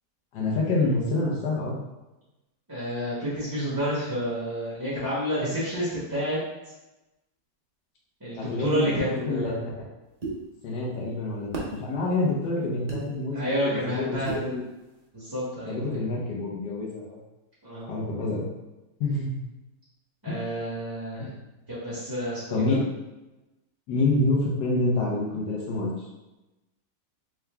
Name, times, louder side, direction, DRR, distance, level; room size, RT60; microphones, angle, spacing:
voice 1, 0.3-1.8 8.4-9.5 10.6-14.6 15.7-17.2 17.9-18.5 19.0-19.4 20.3-20.4 22.5-22.8 23.9-25.9, left 2 dB, 75° left, -4 dB, 1.5 m, -27 dB
voice 2, 2.7-6.4 8.2-9.5 13.3-14.5 15.1-16.0 17.6-17.9 20.2-21.3 21.7-22.8, equal, 15° right, -9 dB, 0.9 m, -29 dB
sound 1, 10.2-10.4 11.5-11.7 12.9-13.0 14.3-14.5, right 3 dB, 75° right, 0.3 m, -32 dB
3.6 x 3.0 x 3.3 m, 1.0 s
omnidirectional pair, 1.9 m